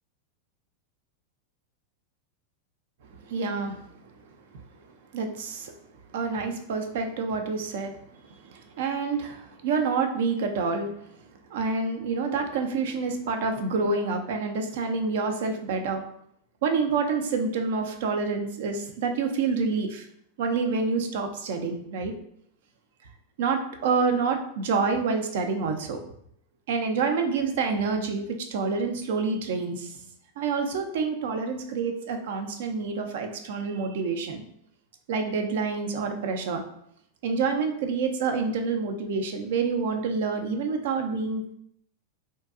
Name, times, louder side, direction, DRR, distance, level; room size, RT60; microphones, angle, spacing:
voice 1, 3.2-3.8 5.1-5.7 6.1-11.2 11.5-16.1 16.6-20.1 20.4-22.1 23.4-26.0 26.7-30.1 30.4-34.4 35.1-36.6 37.2-41.4, right 4 dB, 70° right, 5 dB, 0.4 m, -28 dB
2.6 x 2.2 x 2.4 m, 0.71 s
hypercardioid pair, 105°, 0 cm